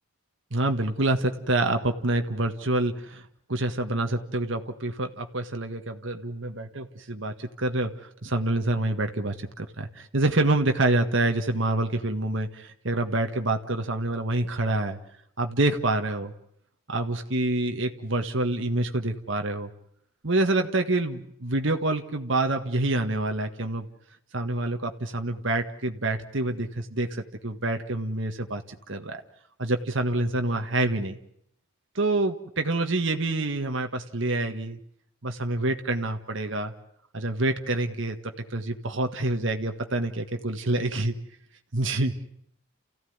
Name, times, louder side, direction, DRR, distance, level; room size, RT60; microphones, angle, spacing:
voice 1, 0.5-3.2 3.5-7.9 8.2-15.0 15.4-16.3 16.9-19.7 20.2-23.9 24.3-27.1 27.4-28.6 28.9-29.2 29.6-31.2 32.0-34.8 35.2-36.7 37.1-38.2 38.5-41.1 41.7-42.1, right 2 dB, 60° right, 5 dB, 1.7 m, -27 dB
29.0 x 15.5 x 9.5 m, 0.72 s
head